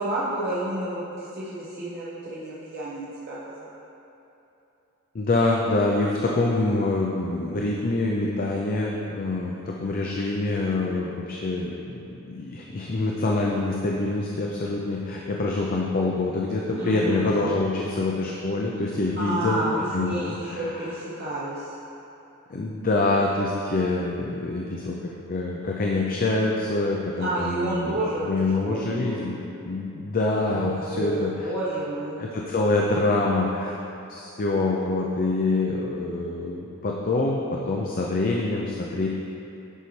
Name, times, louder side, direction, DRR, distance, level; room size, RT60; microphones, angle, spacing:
voice 1, 0.0-3.7 16.8-17.4 19.2-21.7 27.2-29.2 30.5-32.2, right 1 dB, 45° right, -9 dB, 1.1 m, -30 dB
voice 2, 5.1-19.6 19.9-20.9 22.5-25.0 25.3-28.0 28.3-31.5 32.2-33.7 34.1-39.1, left 2 dB, 40° left, -2 dB, 0.5 m, -25 dB
10.0 x 5.4 x 3.3 m, 2.9 s
head